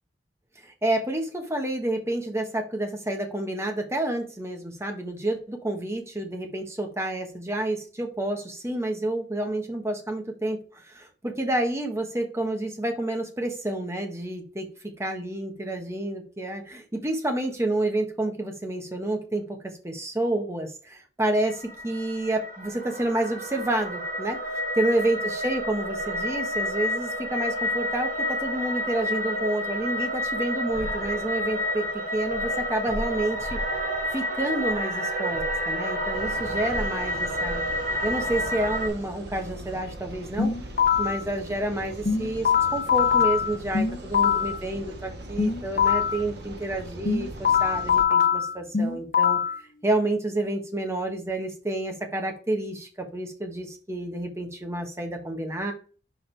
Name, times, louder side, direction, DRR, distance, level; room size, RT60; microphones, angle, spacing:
voice 1, 0.6-14.7 15.0-19.6 19.8-31.8 32.1-33.6 34.1-37.6 38.0-40.5 41.0-49.4 49.8-55.7, right 1 dB, 15° right, 3 dB, 1.2 m, -29 dB
sound 1, 21.3-38.9, equal, 50° right, 2.6 m, -29 dB
sound 2, 36.1-48.0, right 1 dB, 65° right, 1.3 m, -41 dB
sound 3, 40.4-41.2 42.0-44.6 45.4-46.2 47.0-49.6, left 7 dB, 50° left, 0.9 m, -23 dB
6.3 x 4.8 x 3.3 m, 0.38 s
head